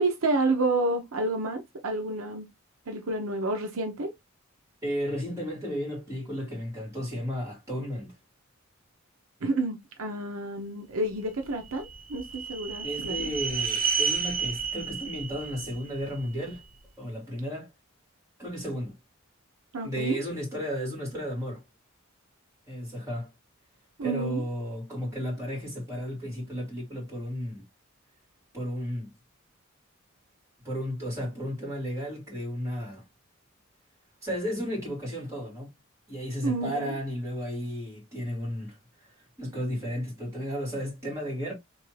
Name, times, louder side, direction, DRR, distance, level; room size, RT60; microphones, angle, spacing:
voice 1, 0.0-2.5 2.9-4.1 9.4-13.3 19.7-20.2 24.0-24.4 36.4-36.9, right 2 dB, 75° right, 0.7 m, -29 dB
voice 2, 4.8-8.1 12.8-16.6 17.0-17.7 18.4-19.0 19.8-21.6 22.7-23.3 24.0-27.6 28.5-29.1 30.6-33.1 34.2-35.7 36.1-39.1 39.4-41.5, equal, 15° right, 2.3 m, -33 dB
sound 1, 11.4-16.6, right 6 dB, 40° right, 0.7 m, -31 dB
3.4 x 2.7 x 3.1 m
head